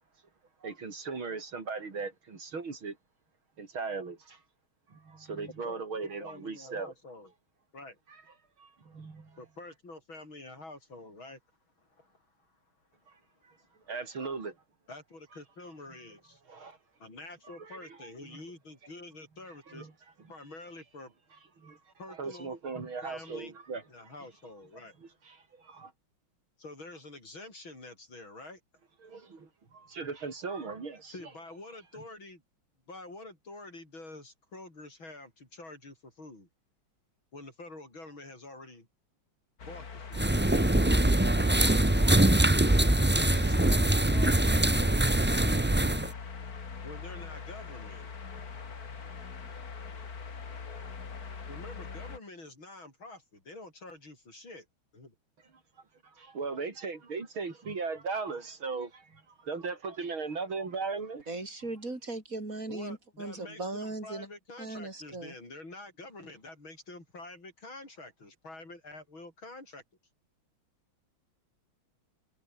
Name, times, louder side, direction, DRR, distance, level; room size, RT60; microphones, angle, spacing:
voice 1, 0.6-3.0 3.6-4.4 4.9-6.9 8.6-9.4 13.9-14.5 16.5-16.8 17.6-18.4 19.7-19.9 21.6-21.8 22.1-23.8 25.3-25.9 29.0-31.1 56.0-61.3, right 4 dB, 75° right, 4.8 m, -38 dB
voice 2, 5.6-7.3 7.7-8.0 9.4-11.4 11.8-12.6 12.9-13.9 14.9-16.4 17.0-19.9 20.3-21.1 22.0-22.5 23.0-23.5 23.9-25.0 26.6-28.6 31.1-32.4 32.9-36.5 37.3-38.9 39.7-40.3 41.4-44.7 46.8-48.0 51.5-54.7 54.9-55.2 62.7-69.8, left 2 dB, 70° left, 8.6 m, -47 dB
sound 1, 39.6-52.2, left 5 dB, 45° left, 2.6 m, -42 dB
sound 2, 40.1-46.1, right 1 dB, 10° right, 0.5 m, -23 dB
voice 3, 61.3-64.3 64.6-65.3, right 2 dB, 40° right, 5.1 m, -38 dB
omnidirectional pair, 2.2 m